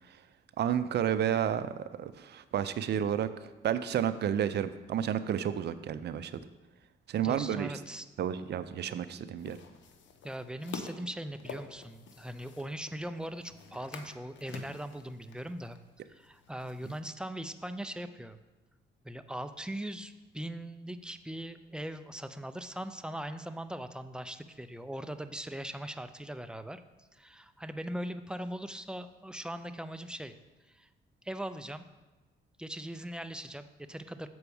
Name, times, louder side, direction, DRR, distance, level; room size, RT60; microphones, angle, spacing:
voice 1, 0.6-3.3 3.6-6.4 7.1-7.7 8.2-9.6, right 9 dB, 60° right, 12 dB, 0.5 m, -31 dB
voice 2, 7.2-8.1 9.1-9.3 10.2-15.8 16.1-18.4 19.0-26.8 27.1-30.3 30.7-30.9 31.2-31.8 32.6-34.3, right 1 dB, 5° right, 10 dB, 0.5 m, -40 dB
sound 1, 9.4-17.0, left 5 dB, 70° left, 0.9 m, -49 dB
7.0 x 4.7 x 7.0 m, 1.2 s
cardioid pair, 90°, 20 cm